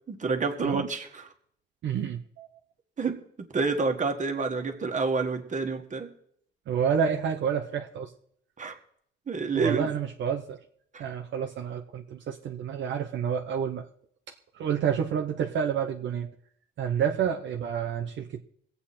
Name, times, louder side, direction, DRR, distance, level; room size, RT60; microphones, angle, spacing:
voice 1, 0.1-1.2 3.0-6.1 8.6-8.7 9.3-9.9 10.9-11.0, right 4 dB, 40° right, 5 dB, 1.8 m, -29 dB
voice 2, 1.8-2.5 6.7-8.1 9.5-10.6 11.0-13.8 14.5-16.3 16.8-18.4, right 8 dB, 70° right, 3 dB, 1.0 m, -29 dB
22.0 x 8.4 x 4.3 m, 0.68 s
cardioid pair, 90°, 20 cm